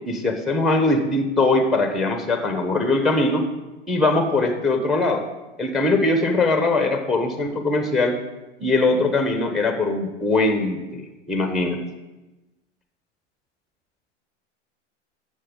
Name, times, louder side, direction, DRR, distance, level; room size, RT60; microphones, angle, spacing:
voice 1, 0.0-3.4 3.9-5.2 5.6-8.2 8.6-11.0 11.3-11.8, left 2 dB, ahead, 6 dB, 1.1 m, -21 dB
11.0 x 7.2 x 3.9 m, 1.1 s
hypercardioid pair, 105°, 36 cm